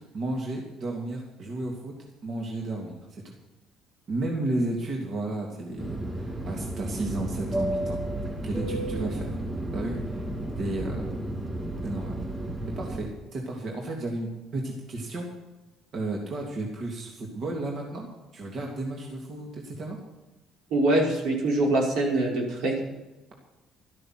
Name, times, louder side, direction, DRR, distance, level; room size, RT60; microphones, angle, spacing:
voice 1, 0.1-1.9 2.2-3.2 4.1-8.0 8.4-9.4 9.7-10.2 10.6-11.1 11.8-12.2 12.8-15.3 15.9-20.0, right 2 dB, 45° right, -1 dB, 2.9 m, -33 dB
Fixed-wing aircraft airplane, 5.8-13.0, right 1 dB, 15° right, 4.7 m, -32 dB
voice 2, 20.7-22.7, right 2 dB, 80° right, -2 dB, 5.4 m, -24 dB
13.0 x 13.0 x 6.1 m, 1.1 s
cardioid pair, 130°, 0 cm